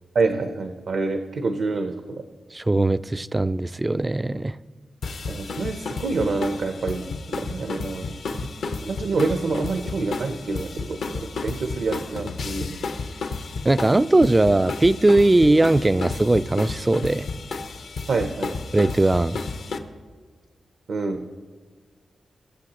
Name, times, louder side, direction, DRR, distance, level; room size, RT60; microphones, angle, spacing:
voice 1, 0.1-2.2 5.3-7.0 7.3-8.0 8.8-12.8 18.1-18.5 20.9-21.2, right 3 dB, 75° right, 6 dB, 0.7 m, -27 dB
voice 2, 2.5-4.6 13.6-17.3 18.7-19.4, right 2 dB, 25° right, 18 dB, 0.3 m, -19 dB
sound 1, 5.0-19.8, left 4 dB, 85° left, 0.8 m, -32 dB
21.5 x 7.6 x 3.0 m, 1.5 s
cardioid pair, 50°, 0 cm